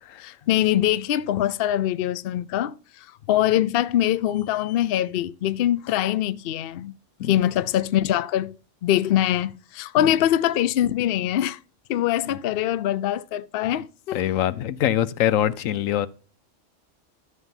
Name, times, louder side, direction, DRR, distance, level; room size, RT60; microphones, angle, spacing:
voice 1, 0.2-2.8 3.3-6.9 7.3-8.5 8.8-11.6 11.9-14.3, left 12 dB, 60° left, 0.7 m, -23 dB
voice 2, 14.1-16.1, left 11 dB, 85° left, 1.1 m, -24 dB
12.5 x 7.4 x 2.7 m
omnidirectional pair, 1.3 m